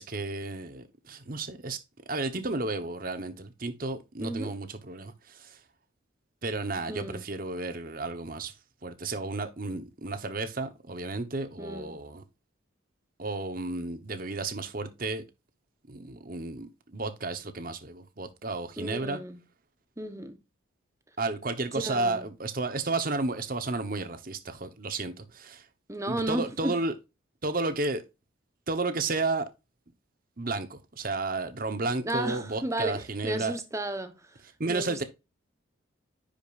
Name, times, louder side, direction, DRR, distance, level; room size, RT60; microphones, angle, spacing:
voice 1, 0.0-1.8 2.1-5.6 6.4-8.5 8.8-12.2 13.2-15.2 15.9-19.2 21.2-25.6 26.1-26.9 27.4-28.0 28.7-29.5 30.4-33.6 34.6-35.0, right 3 dB, 45° right, 1.0 m, -32 dB
voice 2, 4.2-4.5 6.9-7.3 11.6-12.0 18.8-19.4 20.0-20.4 21.7-22.3 25.9-26.8 32.0-34.2 34.7-35.0, right 1 dB, 15° right, 1.0 m, -33 dB
10.5 x 5.1 x 2.5 m
head